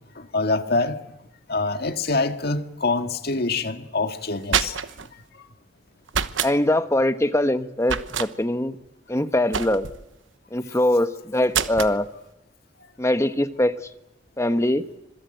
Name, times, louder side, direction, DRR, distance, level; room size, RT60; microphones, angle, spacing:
voice 1, 0.2-1.0 1.5-4.8, left 3 dB, 55° left, 1.9 m, -25 dB
sound 1, 4.2-5.1 6.1-6.5 7.8-8.3 9.5-10.0 11.5-12.0, right 7 dB, 80° right, 1.1 m, -26 dB
voice 2, 6.4-8.7 9.1-9.9 10.5-12.1 13.0-13.7 14.4-14.8, left 1 dB, 15° left, 1.1 m, -22 dB
26.5 x 21.5 x 7.9 m
head